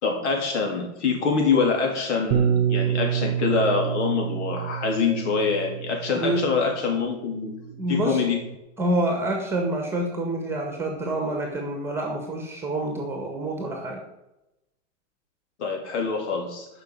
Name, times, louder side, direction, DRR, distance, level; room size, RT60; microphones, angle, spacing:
voice 1, 0.0-7.5 7.9-8.4 15.6-16.7, left 5 dB, 65° left, 2 dB, 3.8 m, -25 dB
Bass guitar, 2.3-6.8 7.6-8.6, right 9 dB, 25° right, 0.5 m, -28 dB
voice 2, 7.8-8.2 8.8-14.0, right 1 dB, 5° right, 2 dB, 1.6 m, -27 dB
10.5 x 6.3 x 9.0 m, 0.93 s
supercardioid pair, 170°, 37 cm